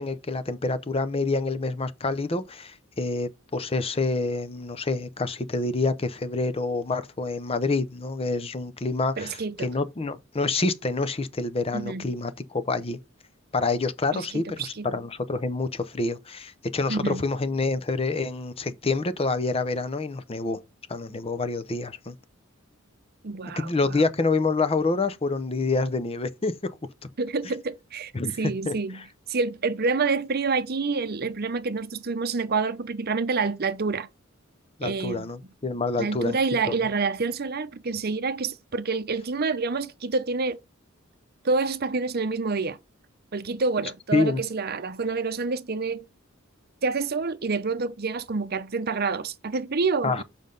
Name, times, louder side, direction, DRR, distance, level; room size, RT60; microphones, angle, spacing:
voice 1, 0.0-13.0 13.5-20.6 20.9-22.1 23.6-26.7 28.1-28.4 28.7-28.8 34.8-36.4 36.7-36.8 44.1-44.4 50.0-50.2, left 3 dB, 30° left, 0.6 m, -27 dB
voice 2, 9.2-9.7 11.7-12.1 14.1-14.9 16.9-17.2 23.2-24.0 27.2-28.1 28.4-29.0 29.3-34.1 34.8-35.3 36.0-40.6 41.4-42.8 43.3-46.0 46.8-50.2, right 4 dB, 50° right, 0.7 m, -28 dB
7.2 x 5.3 x 3.8 m
head